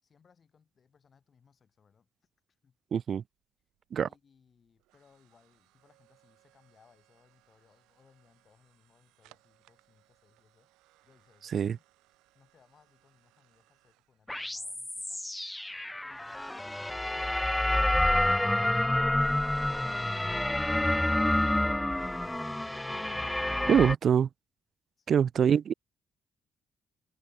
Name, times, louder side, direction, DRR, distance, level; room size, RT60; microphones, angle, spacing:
voice 1, 0.0-2.1 2.6-2.8 4.0-10.7 11.0-11.8 12.1-15.2 25.0-25.3, left 6 dB, 50° left, 7.4 m, -66 dB
voice 2, 2.9-3.2 3.9-4.1 11.5-11.8 23.7-24.3 25.1-25.7, right 8 dB, 60° right, 0.3 m, -24 dB
sound 1, 3.3-16.4, right 19 dB, 85° right, 4.3 m, -68 dB
sound 2, 14.3-23.9, left 1 dB, 10° left, 0.4 m, -28 dB
supercardioid pair, 60°, 0 cm